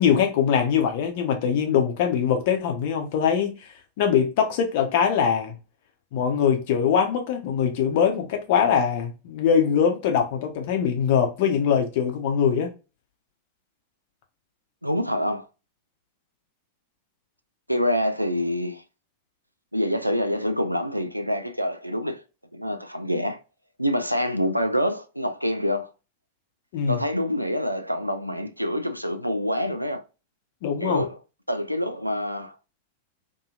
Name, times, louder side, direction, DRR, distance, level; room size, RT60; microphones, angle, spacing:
voice 1, 0.0-3.5 4.0-5.5 6.1-12.7 26.7-27.0 30.6-31.0, left 7 dB, 50° left, 0.7 m, -22 dB
voice 2, 14.8-15.4 17.7-18.8 19.7-22.2 22.5-23.4 23.8-25.9 26.9-30.0 30.8-31.2 31.5-32.6, equal, 90° right, 0.3 m, -26 dB
2.8 x 2.7 x 2.3 m
figure-of-eight pair, 90°, 0 cm